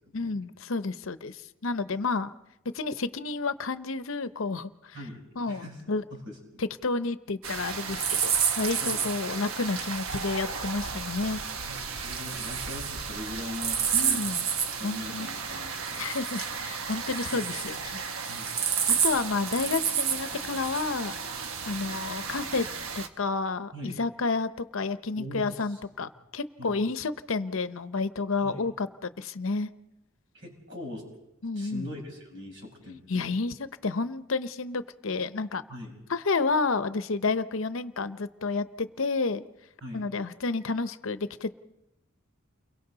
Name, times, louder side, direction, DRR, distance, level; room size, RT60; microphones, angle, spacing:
voice 1, 0.1-2.3 2.7-4.9 5.4-6.0 6.6-11.4 13.9-14.4 14.8-15.3 16.0-18.0 19.0-21.1 21.7-22.7 23.0-29.7 31.4-31.9 33.1-35.6 36.1-39.4 39.9-41.5, left 3 dB, 70° left, 13 dB, 0.7 m, -30 dB
voice 2, 4.9-5.8 6.1-6.4 8.8-9.0 11.6-14.4 14.8-16.0 16.8-16.9 17.3-17.4 18.3-18.5 23.7-24.0 25.2-25.8 26.6-26.8 28.4-28.7 30.3-31.1 31.6-33.4 35.7-36.0 39.8-40.1, left 1 dB, 60° right, -2 dB, 7.3 m, -41 dB
sound 1, 7.4-23.1, right 7 dB, 80° right, 1.2 m, -31 dB
29.5 x 23.0 x 4.0 m, 0.90 s
head